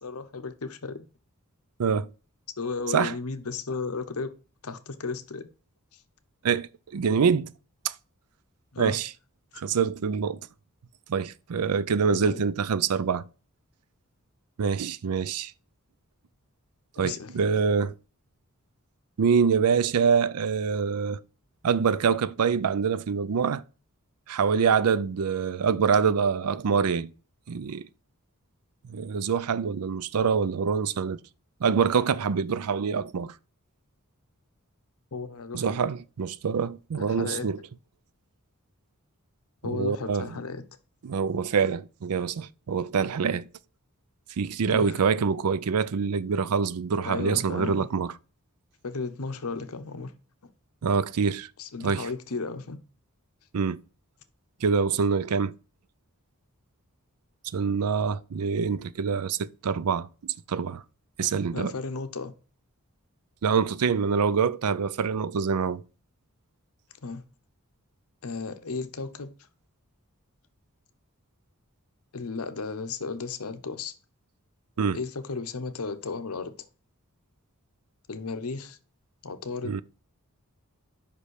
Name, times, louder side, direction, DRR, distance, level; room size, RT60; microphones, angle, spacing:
voice 1, 0.0-1.0 2.6-4.3 4.6-5.5 5.9-6.0 8.7-9.0 12.1-12.4 17.0-17.3 35.1-35.7 36.9-37.5 39.6-40.6 44.7-45.0 47.0-47.9 48.8-50.1 51.6-52.8 61.5-62.3 67.0-67.2 68.2-69.3 72.1-73.9 74.9-76.5 78.1-78.8 79.2-79.7, left 4 dB, 75° left, 0.9 m, -34 dB
voice 2, 6.4-7.5 7.8-7.9 8.8-9.1 9.6-10.4 11.1-13.2 14.6-15.5 17.0-17.9 19.2-21.2 21.6-23.6 24.3-27.1 27.5-27.9 28.9-31.2 31.6-33.3 35.5-37.6 39.6-40.3 41.0-43.5 44.4-48.1 50.8-51.5 51.8-52.1 53.5-53.8 54.6-55.5 57.5-60.8 61.2-61.7 63.4-65.8 74.8-75.0 79.6-79.8, right 6 dB, 90° right, 0.5 m, -25 dB
5.5 x 5.2 x 6.4 m
head